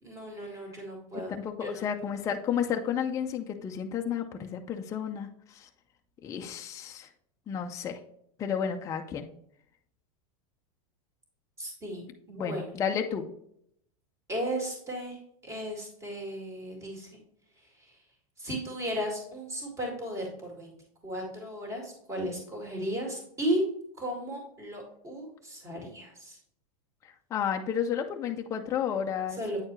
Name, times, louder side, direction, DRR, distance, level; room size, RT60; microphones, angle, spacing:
voice 1, 0.0-1.4 1.6-1.8 11.6-12.7 14.3-15.2 15.4-17.1 18.4-20.7 21.0-23.6 24.0-26.4 29.3-29.6, equal, 15° right, 1 dB, 2.0 m, -35 dB
voice 2, 1.4-5.7 6.2-7.1 7.5-8.0 8.4-9.3 12.4-13.3 27.0-29.4, left 8 dB, 20° left, 4 dB, 0.4 m, -32 dB
8.6 x 4.4 x 3.0 m, 0.70 s
supercardioid pair, 150°, 18 cm